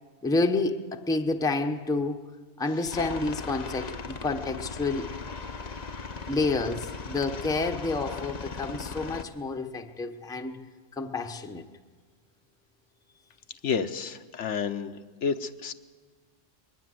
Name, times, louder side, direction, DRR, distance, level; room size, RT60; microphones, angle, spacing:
voice 1, 0.2-2.2 2.6-5.1 6.3-10.6 11.0-11.6, left 3 dB, 5° left, 5 dB, 0.7 m, -29 dB
Aircraft, 2.9-9.2, left 4 dB, 40° left, 0.9 m, -38 dB
voice 2, 13.6-15.7, left 6 dB, 70° left, 9 dB, 1.1 m, -30 dB
21.0 x 19.5 x 7.7 m, 1.5 s
omnidirectional pair, 1.3 m